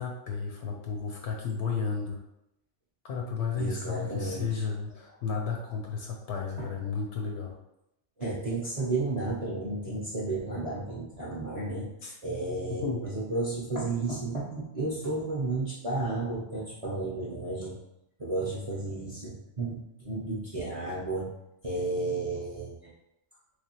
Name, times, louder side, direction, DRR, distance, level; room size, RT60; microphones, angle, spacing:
voice 1, 0.0-2.2 3.0-7.6 12.0-12.2 12.8-13.0, left 5 dB, 65° left, 1 dB, 0.7 m, -33 dB
voice 2, 3.6-4.6 6.6-6.7 8.2-11.9 12.2-17.7 18.2-21.3 21.6-22.9, right 2 dB, 35° right, -6 dB, 0.6 m, -32 dB
3.4 x 3.3 x 2.8 m, 0.85 s
omnidirectional pair, 1.4 m